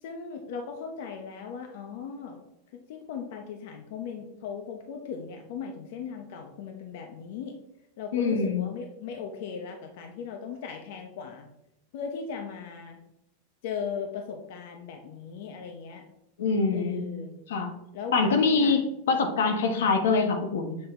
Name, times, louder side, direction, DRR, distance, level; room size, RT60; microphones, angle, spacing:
voice 1, 0.0-2.4 2.7-7.6 8.0-11.5 11.9-13.0 13.6-16.0 16.7-17.4 17.9-18.2 18.6-18.7, left 6 dB, 60° left, 4 dB, 0.9 m, -37 dB
voice 2, 8.1-8.6 16.4-17.1 17.5-17.7 18.1-20.8, left 4 dB, 85° left, 5 dB, 1.2 m, -24 dB
7.5 x 4.1 x 4.4 m, 0.85 s
supercardioid pair, 155°, 0 cm